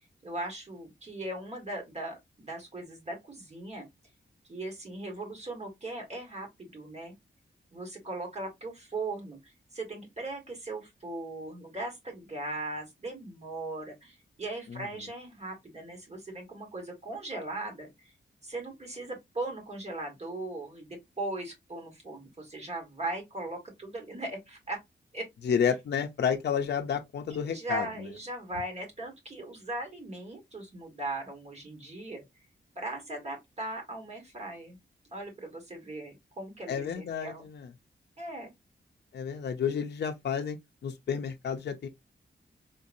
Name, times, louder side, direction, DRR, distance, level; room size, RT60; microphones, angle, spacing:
voice 1, 0.2-3.9 4.5-7.1 7.7-18.1 18.4-24.8 25.1-25.3 27.4-32.2 32.7-34.8 35.1-37.5 38.2-38.5, right 2 dB, 35° right, 1.6 m, -39 dB
voice 2, 25.4-27.9 36.7-37.7 39.1-40.6 40.8-41.9, left 7 dB, 60° left, 0.5 m, -30 dB
3.8 x 2.6 x 2.5 m
wide cardioid pair, 95°, 19 cm